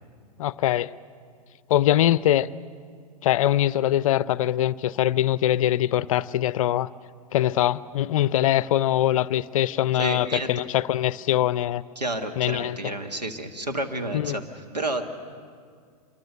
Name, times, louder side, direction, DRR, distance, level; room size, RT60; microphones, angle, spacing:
voice 1, 0.4-0.9 1.7-2.5 3.2-6.9 7.3-11.8 12.4-12.9 14.1-14.4, left 12 dB, 55° left, 19 dB, 0.5 m, -23 dB
voice 2, 10.0-10.5 11.9-15.0, right 1 dB, 90° right, 5 dB, 1.8 m, -30 dB
25.5 x 22.5 x 6.7 m, 2.1 s
figure-of-eight pair, 105°, 21 cm